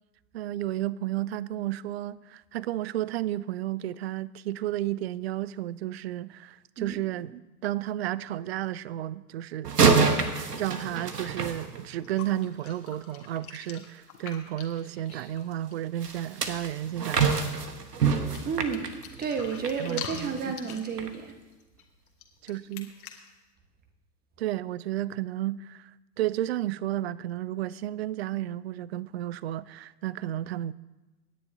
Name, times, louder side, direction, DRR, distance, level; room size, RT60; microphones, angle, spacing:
voice 1, 0.3-10.0 10.5-17.4 19.8-20.5 22.4-22.9 24.4-25.9 26.2-30.7, right 13 dB, 45° right, 0.4 m, -32 dB
sound 1, 9.6-12.2 16.0-19.8 20.2-20.4 21.0-21.1, right 5 dB, 75° right, 1.4 m, -26 dB
sound 2, 11.9-15.7 16.1-16.2 16.4-16.8 17.1-17.7 18.3-23.3, left 7 dB, 60° left, 1.9 m, -44 dB
voice 2, 18.4-21.3, right 6 dB, 20° right, 1.4 m, -32 dB
25.5 x 10.5 x 2.8 m
figure-of-eight pair, 95°, 48 cm